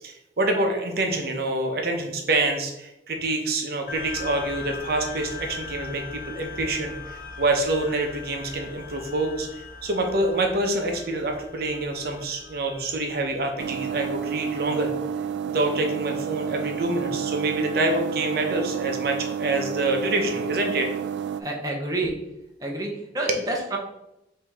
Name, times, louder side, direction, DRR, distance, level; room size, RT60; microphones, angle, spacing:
voice 1, 0.0-14.9 15.5-20.9 22.0-22.1 23.3-23.4, right 2 dB, 60° right, 3 dB, 0.7 m, -26 dB
sound 1, 3.9-14.8, left 4 dB, 45° left, 0.7 m, -40 dB
sound 2, 13.6-21.4, right 8 dB, 80° right, 0.3 m, -30 dB
voice 2, 21.4-22.1 22.6-23.8, right 2 dB, 20° right, -1 dB, 0.7 m, -29 dB
5.0 x 2.8 x 3.4 m, 0.85 s
head